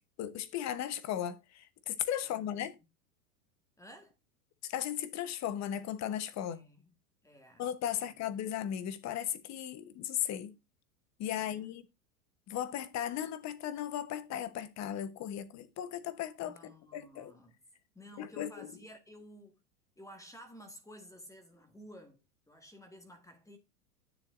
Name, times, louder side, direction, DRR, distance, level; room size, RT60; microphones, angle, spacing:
voice 1, 0.2-2.7 4.6-6.6 7.6-10.5 11.2-11.8 12.5-17.3 18.2-18.7, left 10 dB, 35° left, 1.1 m, -36 dB
voice 2, 2.2-2.7 3.8-4.1 6.5-6.9 7.2-8.2 11.4-11.7 16.5-17.6 17.9-19.6 20.0-23.6, equal, 5° left, 1.8 m, -54 dB
10.0 x 6.9 x 2.6 m
hypercardioid pair, 115°, 47 cm